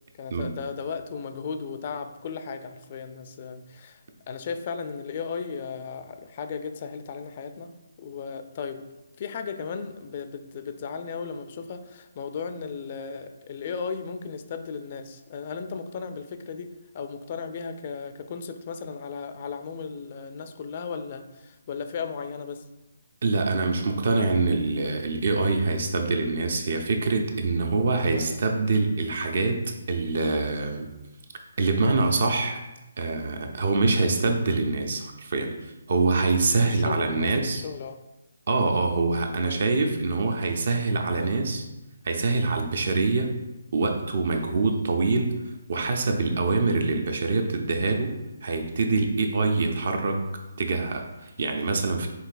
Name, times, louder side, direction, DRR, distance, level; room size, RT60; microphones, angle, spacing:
voice 1, 0.2-7.7 8.0-8.8 9.2-22.6 28.1-28.4 36.7-38.0 39.4-39.6, left 5 dB, 40° left, 7 dB, 0.4 m, -36 dB
voice 2, 23.2-30.9 31.6-32.6 33.0-37.6 38.5-41.7 42.0-43.3 43.7-45.4 45.7-50.2 50.6-52.1, right 3 dB, 60° right, 5 dB, 0.6 m, -25 dB
5.6 x 2.7 x 2.5 m, 0.99 s
figure-of-eight pair, 145°, 0 cm